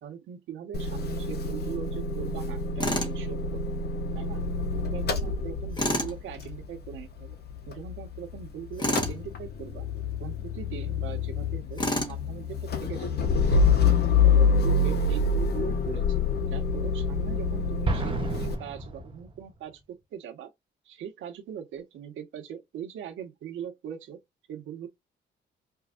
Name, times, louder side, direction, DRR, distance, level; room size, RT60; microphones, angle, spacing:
voice 1, 0.0-3.8 4.1-4.4 4.7-7.4 7.7-9.9 10.2-13.2 13.5-14.0 14.3-16.2 16.5-20.5 20.8-24.2 24.5-24.9, right 9 dB, 80° right, 1.2 m, -41 dB
Motor vehicle (road) / Engine starting / Idling, 0.7-8.5 8.7-18.5, left 4 dB, 55° left, 1.1 m, -27 dB
Tools, 2.8-3.2 5.7-6.1 8.8-9.2 11.8-12.2, left 1 dB, 20° left, 1.3 m, -28 dB
Explosion, 17.8-19.7, right 1 dB, 25° right, 0.9 m, -32 dB
4.7 x 2.5 x 2.5 m
cardioid pair, 90°, 20 cm